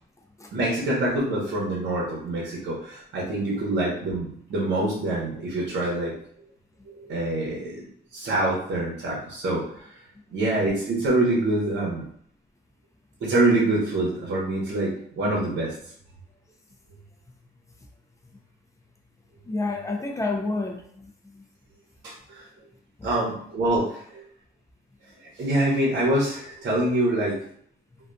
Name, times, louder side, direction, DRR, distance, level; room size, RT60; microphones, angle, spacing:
voice 1, 0.5-6.1 6.9-7.8 8.1-9.6 10.3-12.0 13.2-15.7 22.0-22.4 23.0-24.2 25.4-27.4, right 1 dB, 60° right, -4 dB, 1.0 m, -25 dB
voice 2, 19.5-21.4 23.0-23.1, left 3 dB, 15° left, 2 dB, 0.5 m, -30 dB
2.5 x 2.5 x 2.2 m, 0.63 s
cardioid pair, 90°, 20 cm